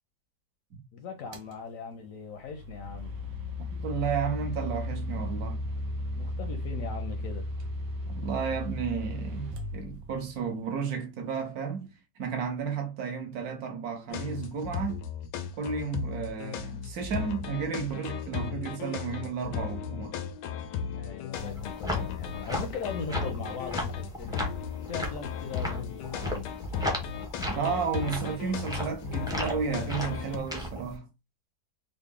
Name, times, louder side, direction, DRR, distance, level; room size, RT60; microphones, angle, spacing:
voice 1, 0.9-3.1 6.1-7.5 20.9-24.5 24.9-26.5, left 5 dB, 70° left, 0.8 m, -39 dB
sound 1, 1.3-1.5 2.4-10.4, left 1 dB, 90° right, 1.4 m, -35 dB
voice 2, 3.8-5.6 8.1-11.9 12.2-15.0 15.6-20.2 27.6-31.1, right 6 dB, 65° right, 1.2 m, -32 dB
sound 2, 14.1-30.4, left 7 dB, 90° left, 1.2 m, -36 dB
sound 3, 21.3-30.9, left 1 dB, 5° right, 0.4 m, -36 dB
3.9 x 2.0 x 3.4 m
omnidirectional pair, 1.8 m